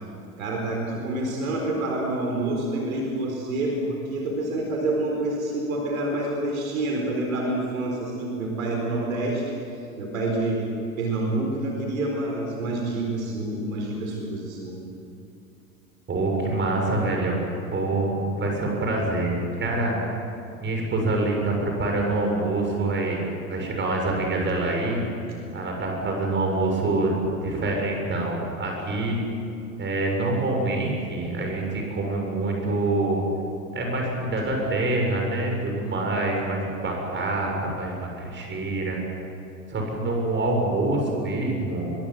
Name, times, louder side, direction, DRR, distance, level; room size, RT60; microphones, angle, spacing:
voice 1, 0.4-9.5 10.0-10.7 11.0-14.8, right 2 dB, 70° right, 0 dB, 4.5 m, -27 dB
voice 2, 16.1-17.4 17.7-20.0 20.6-23.2 23.5-25.0 25.5-29.2 29.8-33.2 33.7-39.0 39.7-41.9, right 2 dB, 25° right, 1 dB, 7.2 m, -26 dB
24.0 x 22.5 x 7.7 m, 2.6 s
figure-of-eight pair, 75°, 42 cm